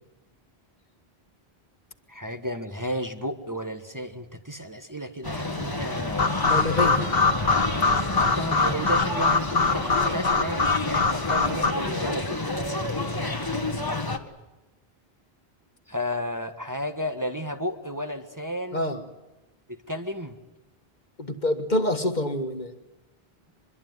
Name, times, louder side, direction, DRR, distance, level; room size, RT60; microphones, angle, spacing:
voice 1, 2.1-6.5 8.1-12.4 15.9-18.9 19.7-20.4, equal, 20° right, 4 dB, 1.6 m, -33 dB
sound 1, 5.2-14.2, left 2 dB, 20° left, 1.6 m, -29 dB
sound 2, 6.2-11.7, left 4 dB, 65° left, 1.7 m, -24 dB
voice 2, 6.4-7.1 11.1-11.3 11.9-12.0 18.7-19.1 21.2-22.8, left 1 dB, 45° left, 7 dB, 1.8 m, -27 dB
24.0 x 22.5 x 9.5 m, 1.0 s
omnidirectional pair, 1.1 m